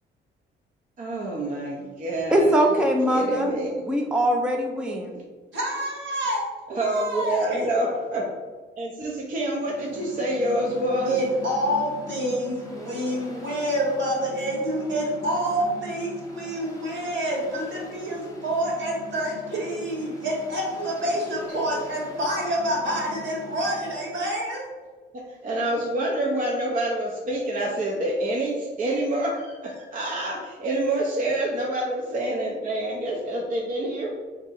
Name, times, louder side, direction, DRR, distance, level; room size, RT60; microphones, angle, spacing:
voice 1, 1.0-3.7 6.7-8.3 8.8-11.2 25.1-34.1, right 1 dB, 40° right, -2 dB, 0.7 m, -27 dB
voice 2, 2.3-3.5 3.9-5.1, equal, 5° right, 1 dB, 0.5 m, -22 dB
voice 3, 5.5-6.4 6.8-7.7 11.1-24.7, right 1 dB, 70° right, -3 dB, 1.5 m, -27 dB
Mechanical fan, 9.4-24.2, left 1 dB, 15° left, 1.0 m, -42 dB
3.5 x 2.7 x 4.1 m, 1.4 s
cardioid pair, 90°, 20 cm